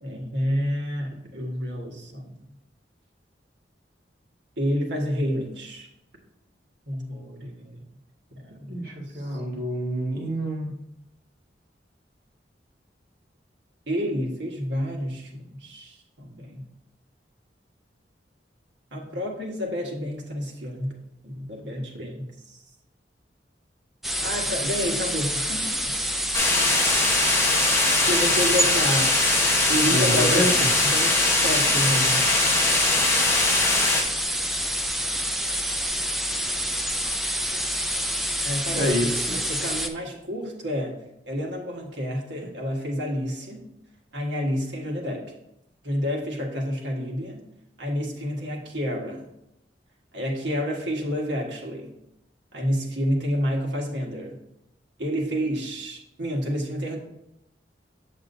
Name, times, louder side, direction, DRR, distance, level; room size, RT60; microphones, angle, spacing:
voice 1, 0.0-2.3 4.6-5.9 6.9-7.8 8.3-8.8 9.1-9.7 13.9-16.7 18.9-21.0 21.2-22.6 24.2-25.9 27.5-29.1 29.7-30.5 30.8-32.3 38.4-39.1 39.5-41.0 41.3-43.6 44.1-45.3 45.8-47.4 47.8-49.3 50.1-51.9 52.5-54.4 55.0-57.0, equal, 85° right, 0 dB, 1.5 m, -29 dB
voice 2, 8.7-10.7 29.9-30.5 38.7-39.4, equal, 55° right, -2 dB, 1.8 m, -27 dB
sound 1, 24.0-39.9, equal, ahead, 0.4 m, -27 dB
sound 2, 26.3-34.0, left 2 dB, 15° left, 1.0 m, -21 dB
7.8 x 7.2 x 2.7 m, 0.84 s
head